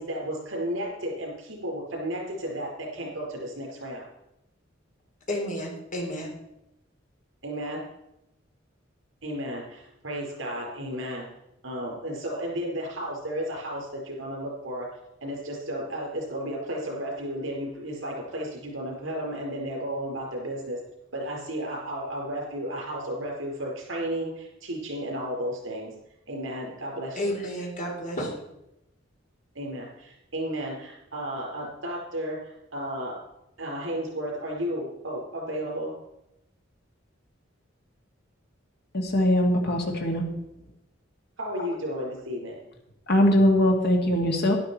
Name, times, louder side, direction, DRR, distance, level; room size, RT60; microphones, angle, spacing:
voice 1, 0.0-4.0 7.4-7.8 9.2-11.3 11.6-14.9 15.2-20.8 21.1-25.9 26.3-27.4 29.5-33.2 33.6-35.9 41.4-42.6, equal, 80° right, -1 dB, 4.8 m, -33 dB
voice 2, 5.3-6.3 27.2-28.4, equal, 40° left, 0 dB, 3.5 m, -31 dB
voice 3, 38.9-40.2 41.6-41.7 43.1-44.6, left 1 dB, 55° left, 1 dB, 2.3 m, -21 dB
11.5 x 11.5 x 4.5 m, 0.88 s
head